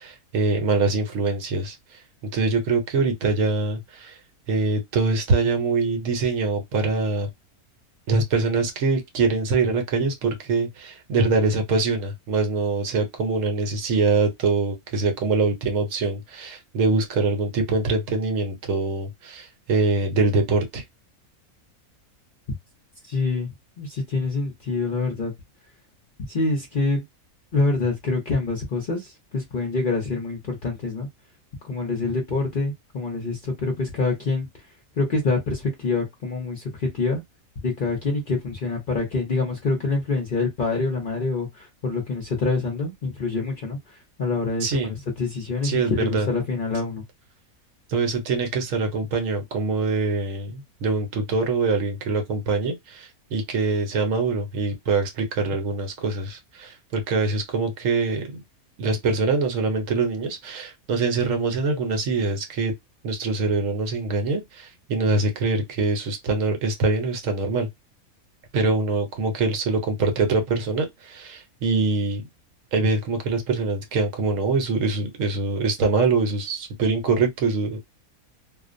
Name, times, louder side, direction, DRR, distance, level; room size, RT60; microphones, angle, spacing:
voice 1, 0.0-2.0 2.3-4.2 4.5-7.3 8.1-20.8 44.6-45.0 45.6-46.3 47.9-58.4 58.8-62.7 63.0-67.7 68.5-72.2 72.7-77.8, right 3 dB, 65° right, 1.0 m, -24 dB
voice 2, 23.1-23.5 23.8-25.3 26.3-27.0 27.5-31.1 31.7-34.5 35.0-37.2 37.6-41.5 41.8-43.8 44.2-44.9 45.2-47.0, left 3 dB, 50° left, 0.7 m, -26 dB
2.4 x 2.0 x 2.5 m
omnidirectional pair, 1.6 m